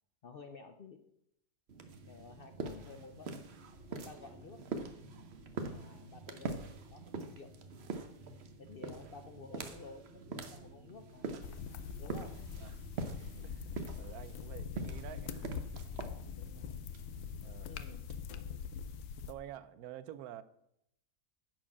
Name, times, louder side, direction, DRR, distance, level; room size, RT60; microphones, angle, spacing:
voice 1, 0.2-1.0 2.1-3.4 3.9-4.6 5.6-7.5 8.6-11.3 12.0-12.5 16.0-16.8 17.7-18.1, left 4 dB, 60° left, 7 dB, 0.6 m, -53 dB
sound 1, 1.7-19.2, right 4 dB, 50° right, 1.0 m, -45 dB
sound 2, 11.4-19.3, left 7 dB, 80° left, 1.2 m, -43 dB
voice 2, 13.4-15.6 17.4-17.7 19.3-20.4, right 11 dB, 75° right, 15 dB, 1.1 m, -49 dB
10.0 x 4.6 x 7.2 m, 0.77 s
omnidirectional pair, 1.7 m